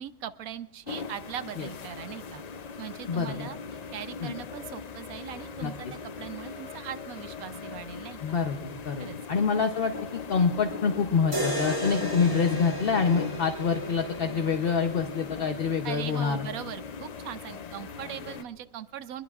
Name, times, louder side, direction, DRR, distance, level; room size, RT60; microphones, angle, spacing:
voice 1, 0.0-2.4 2.8-3.6 3.9-8.2 9.0-9.2 15.8-19.2, right 10 dB, 85° right, 13 dB, 1.1 m, -40 dB
sound 1, 0.9-18.4, left 6 dB, 65° left, 0.4 m, -40 dB
voice 2, 3.1-3.5 4.2-4.3 5.6-5.9 8.2-16.5, left 5 dB, 50° left, 5 dB, 0.9 m, -26 dB
sound 2, 11.3-15.4, right 1 dB, 20° right, 2.4 m, -34 dB
22.5 x 21.5 x 2.4 m, 1.1 s
omnidirectional pair, 1.4 m